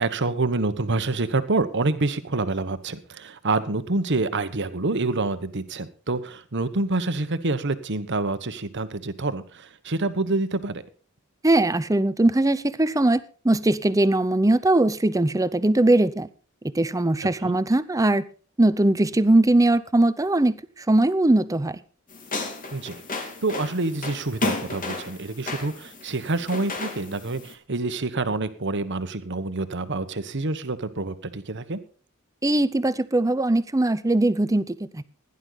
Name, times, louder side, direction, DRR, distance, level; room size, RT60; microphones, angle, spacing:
voice 1, 0.0-10.8 17.4-17.5 22.7-23.0 23.4-31.8, right 3 dB, 60° right, 1.2 m, -27 dB
voice 2, 11.4-16.3 16.7-18.2 18.6-21.8 32.4-35.1, right 2 dB, 15° right, 0.7 m, -20 dB
sound 1, 22.1-27.5, left 3 dB, 40° left, 2.5 m, -33 dB
16.5 x 11.0 x 4.0 m
head